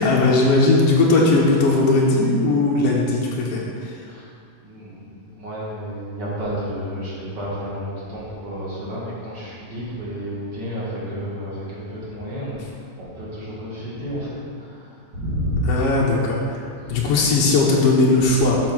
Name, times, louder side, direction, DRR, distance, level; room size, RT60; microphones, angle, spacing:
voice 1, 0.0-4.0 15.6-18.6, left 2 dB, 85° left, -3 dB, 1.3 m, -18 dB
voice 2, 4.6-12.6 13.0-15.7 16.8-17.4 18.2-18.3, equal, 35° right, -7 dB, 2.1 m, -31 dB
7.6 x 4.8 x 6.2 m, 2.4 s
omnidirectional pair, 4.0 m